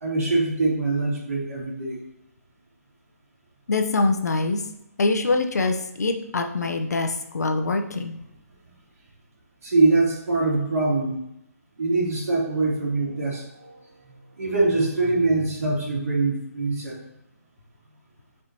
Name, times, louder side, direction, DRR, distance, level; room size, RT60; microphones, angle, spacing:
voice 1, 0.0-2.0 9.6-11.2 11.8-13.7 14.4-17.0, right 3 dB, 65° right, -4 dB, 2.8 m, -23 dB
voice 2, 3.7-4.6 5.0-8.2, left 3 dB, 75° left, 5 dB, 0.9 m, -24 dB
8.6 x 4.9 x 2.9 m, 0.81 s
hypercardioid pair, 150°, 9 cm